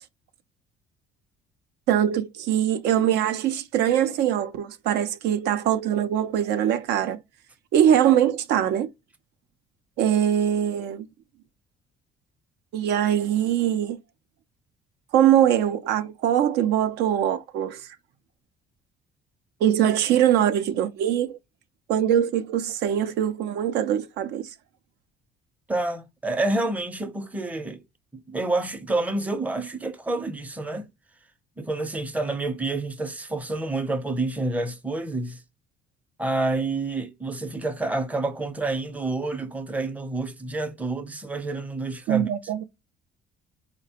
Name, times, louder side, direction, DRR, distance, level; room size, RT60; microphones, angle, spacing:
voice 1, 1.9-7.2 7.7-8.9 10.0-11.1 12.7-14.0 15.1-17.9 19.6-21.4 21.9-24.5 42.1-42.6, right 10 dB, 80° right, 0.4 m, -22 dB
voice 2, 25.7-27.8 28.1-30.9 31.6-35.4 36.2-42.3, right 2 dB, 10° right, 0.5 m, -28 dB
4.0 x 2.1 x 2.7 m
cardioid pair, 110°, 17 cm